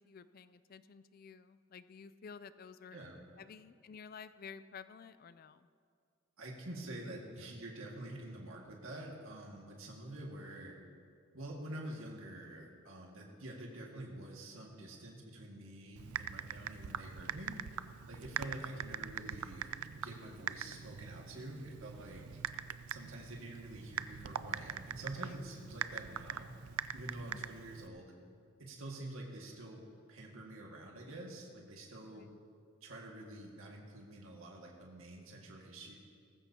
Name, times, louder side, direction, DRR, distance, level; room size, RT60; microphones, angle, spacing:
voice 1, 0.0-3.0 3.4-5.7 25.1-25.4 27.3-27.4 32.1-32.4, left 6 dB, 40° left, 13 dB, 0.3 m, -52 dB
voice 2, 6.4-10.8 11.3-17.6 18.1-22.4 22.9-26.5 26.9-28.1 28.6-29.8 30.1-32.3 32.8-35.9, right 1 dB, 65° right, -1 dB, 1.9 m, -47 dB
Typing, 16.0-27.9, right 9 dB, 80° right, 0.4 m, -43 dB
18.5 x 15.0 x 2.8 m, 2.2 s
head